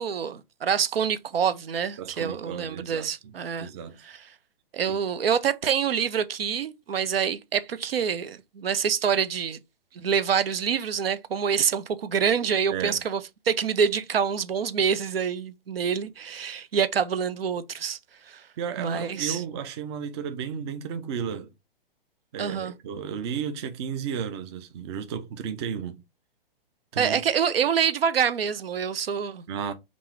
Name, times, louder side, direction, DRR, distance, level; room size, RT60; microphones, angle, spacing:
voice 1, 0.0-3.7 4.0-4.2 4.7-9.6 9.9-13.2 13.5-18.0 18.3-18.4 18.8-19.4 22.4-22.7 27.0-29.4, right 7 dB, 80° right, 0.5 m, -26 dB
voice 2, 2.0-3.3 3.6-4.0 4.9-5.0 12.7-13.0 18.6-21.5 22.3-26.0 26.9-27.2 29.5-29.7, right 7 dB, 30° right, 0.4 m, -33 dB
3.5 x 2.5 x 3.0 m
figure-of-eight pair, 120°, 29 cm